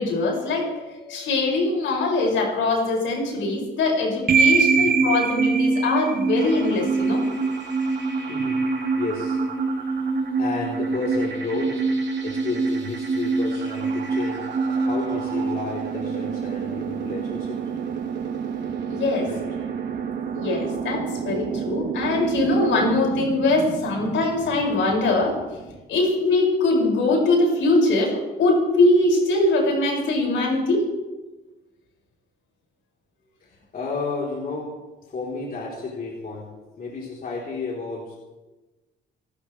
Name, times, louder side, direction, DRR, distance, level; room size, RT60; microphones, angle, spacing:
voice 1, 0.0-7.2 18.9-19.3 20.3-25.4 25.9-30.8, left 2 dB, 75° left, -1 dB, 6.7 m, -22 dB
sound 1, 4.3-16.3, right 4 dB, 45° right, 2.1 m, -24 dB
sound 2, 6.3-25.8, right 7 dB, 60° right, 3.5 m, -33 dB
voice 2, 8.3-8.6 9.0-9.4 10.4-11.8 12.2-14.4 14.9-17.6 19.2-19.4 33.4-34.8 35.1-36.5 36.8-38.2, left 3 dB, 45° left, -4 dB, 4.2 m, -31 dB
28.5 x 13.0 x 3.5 m, 1.2 s
cardioid pair, 90°, 20 cm